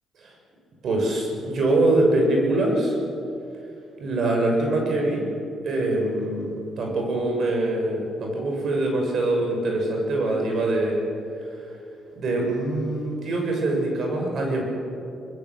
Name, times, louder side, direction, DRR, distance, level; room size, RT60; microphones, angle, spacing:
voice 1, 0.8-3.0 4.0-5.3 5.6-6.5 6.8-11.0 12.1-14.6, right 2 dB, 60° right, 1 dB, 7.0 m, -23 dB
23.0 x 21.0 x 7.7 m, 2.6 s
cardioid pair, 90°, 0 cm